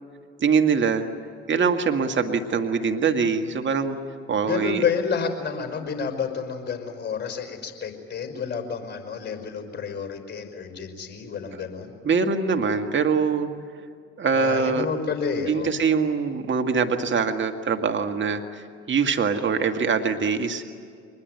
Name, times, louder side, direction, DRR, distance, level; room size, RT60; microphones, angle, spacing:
voice 1, 0.4-1.1 1.5-4.0 4.3-4.8 12.0-13.5 14.2-14.9 15.5-20.7, right 5 dB, 35° right, 5 dB, 1.9 m, -23 dB
voice 2, 4.4-11.9 14.3-15.7, left 6 dB, 35° left, 6 dB, 5.4 m, -29 dB
24.5 x 21.0 x 9.5 m, 2.3 s
hypercardioid pair, 60°, 31 cm